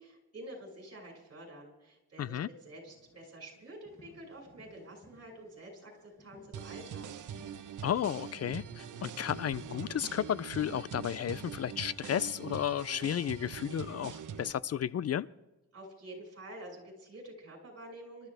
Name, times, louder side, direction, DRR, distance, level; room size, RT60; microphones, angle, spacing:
voice 1, 0.0-7.1 15.7-18.3, right 1 dB, 50° right, -1 dB, 5.9 m, -48 dB
voice 2, 2.2-2.5 7.8-15.3, left 10 dB, 55° left, 19 dB, 0.4 m, -33 dB
sound 1, 2.9-12.7 13.3-13.5, left 1 dB, 10° left, 5.5 m, -61 dB
sound 2, 6.5-14.5, right 8 dB, 75° right, 0.9 m, -43 dB
26.5 x 13.0 x 3.4 m, 1.0 s
wide cardioid pair, 110°, 31 cm